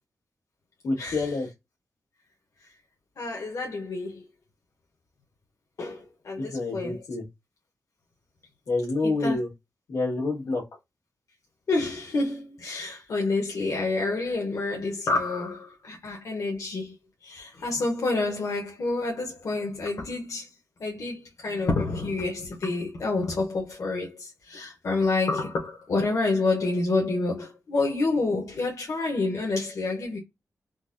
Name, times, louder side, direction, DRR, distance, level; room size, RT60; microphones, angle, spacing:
voice 1, 0.8-1.5 6.4-7.2 8.7-9.5 9.9-10.6, left 3 dB, 90° left, 1.6 m, -27 dB
voice 2, 3.2-4.2 5.8-7.0 9.0-9.4 11.7-16.9 17.2-20.5 20.8-30.2, left 3 dB, 65° left, 0.9 m, -28 dB
3.9 x 2.2 x 2.5 m
wide cardioid pair, 115°, 6 cm